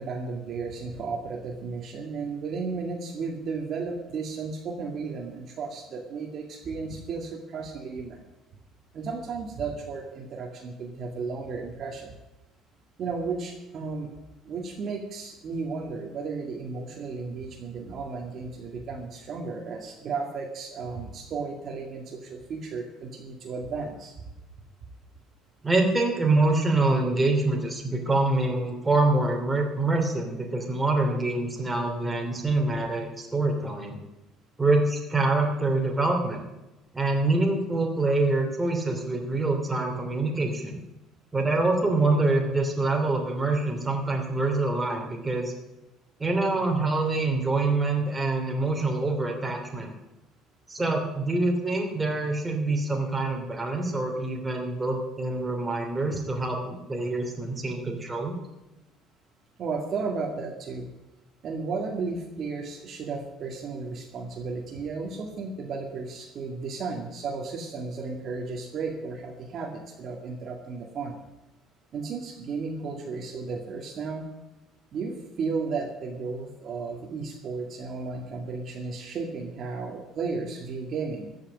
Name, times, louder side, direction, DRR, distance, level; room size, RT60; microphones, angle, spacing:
voice 1, 0.0-8.2 8.9-12.1 13.0-14.1 14.4-24.1 56.1-56.2 59.6-60.9 61.4-71.2 71.9-74.3 74.9-81.4, right 4 dB, 45° right, 2 dB, 2.0 m, -34 dB
voice 2, 25.6-34.0 34.6-36.4 36.9-40.8 41.3-45.5 46.2-49.9 50.7-58.3, right 2 dB, 15° right, 1 dB, 2.8 m, -25 dB
14.0 x 6.6 x 9.5 m, 0.97 s
cardioid pair, 140°, 0 cm